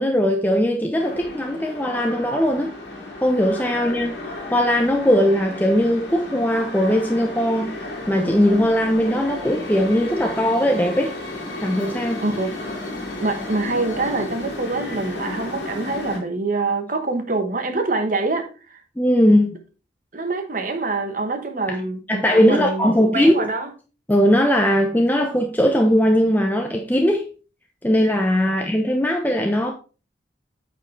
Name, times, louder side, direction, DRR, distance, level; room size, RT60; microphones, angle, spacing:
voice 1, 0.0-2.7 3.2-7.7 8.1-11.1 11.6-12.2 19.0-19.6 22.1-23.5 24.1-27.2 27.8-29.7, equal, 10° left, 0.8 m, -19 dB
sound 1, 1.0-16.2, left 2 dB, 75° left, 3.0 m, -33 dB
voice 2, 12.2-12.5 13.2-18.8 20.1-23.7, right 3 dB, 45° right, 1.2 m, -25 dB
9.0 x 5.4 x 3.3 m
head